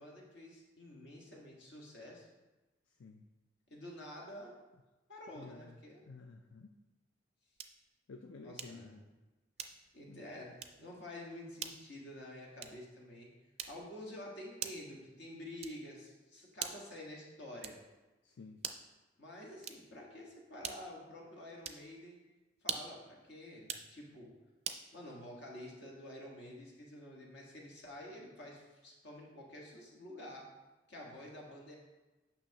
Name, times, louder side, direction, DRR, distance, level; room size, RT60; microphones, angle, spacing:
voice 1, 0.0-2.3 3.7-4.5 5.1-6.0 8.4-9.1 9.9-13.3 13.7-17.8 19.2-22.2 22.6-24.3 24.9-30.5 30.9-31.8, left 1 dB, 60° left, -2 dB, 1.6 m, -49 dB
voice 2, 5.3-5.8 6.1-6.7 8.1-9.0 10.1-10.3 18.2-18.6, left 4 dB, 80° left, 5 dB, 0.4 m, -52 dB
sound 1, 7.6-7.9 8.6-8.9 9.6-10.0 10.6-10.9 11.6-11.9 12.6-12.9 13.6-14.0 14.6-15.0 15.6-16.0 16.6-17.0 17.6-18.0 18.6-19.0 19.6-20.0 20.6-21.0 21.6-21.9 22.6-23.0 23.6-23.9 24.6-24.9, right 8 dB, 30° right, 0.4 m, -43 dB
8.7 x 5.9 x 2.9 m, 1.1 s
head